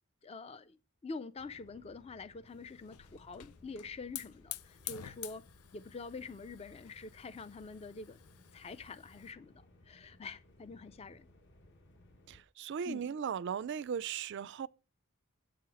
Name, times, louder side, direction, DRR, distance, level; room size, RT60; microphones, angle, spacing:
voice 1, 0.2-0.8 1.0-5.4 5.7-8.2 8.5-9.5 9.9-11.3 12.9-13.1, left 4 dB, 30° left, 0.4 m, -46 dB
sound 1, 1.4-12.4, left 1 dB, 55° left, 1.2 m, -62 dB
Hiss / Fire, 2.5-9.3, left 12 dB, 85° left, 0.5 m, -49 dB
voice 2, 12.3-14.7, right 7 dB, 55° right, 0.3 m, -37 dB
7.5 x 5.7 x 6.2 m
head